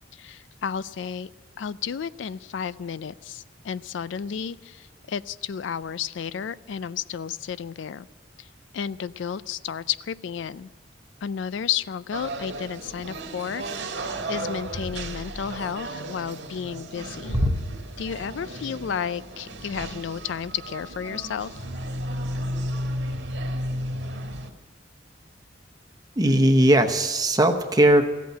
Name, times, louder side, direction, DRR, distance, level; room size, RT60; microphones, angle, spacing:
voice 1, 0.1-1.3 1.6-8.1 8.4-8.5 8.7-10.7 11.2-17.4 18.0-21.6, left 7 dB, 80° left, 17 dB, 0.4 m, -32 dB
sound 1, 12.1-24.5, right 1 dB, 75° right, 1.7 m, -34 dB
voice 2, 26.2-28.1, right 1 dB, 20° right, 6 dB, 0.9 m, -19 dB
15.5 x 8.3 x 8.9 m, 1.3 s
head